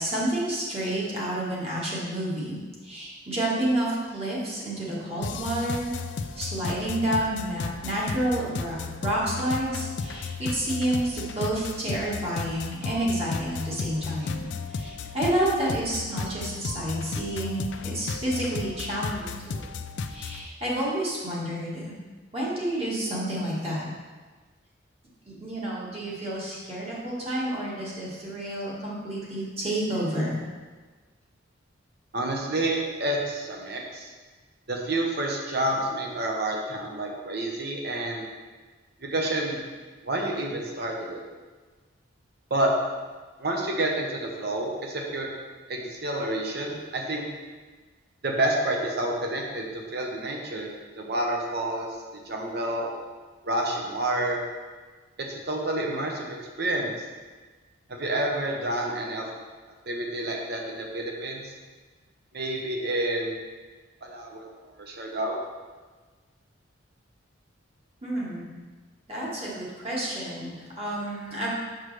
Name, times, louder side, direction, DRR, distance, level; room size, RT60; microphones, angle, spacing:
voice 1, 0.0-5.9 6.2-8.8 9.0-19.7 20.1-21.9 22.3-23.9 25.3-30.3 68.0-68.5 69.1-71.5, right 1 dB, 30° right, -6 dB, 1.6 m, -29 dB
sound 1, 5.2-20.5, left 4 dB, 60° left, 0.4 m, -34 dB
voice 2, 32.1-34.1 34.7-38.2 39.0-39.6 40.0-41.2 42.5-42.7 43.4-45.3 45.7-47.2 48.2-50.7 51.0-51.9 52.2-52.9 53.4-54.4 55.3-56.9 57.9-59.3 59.9-61.4 62.3-63.4 64.0-64.5 64.8-65.4, right 1 dB, 50° right, 0 dB, 1.0 m, -29 dB
6.4 x 6.2 x 3.3 m, 1.4 s
head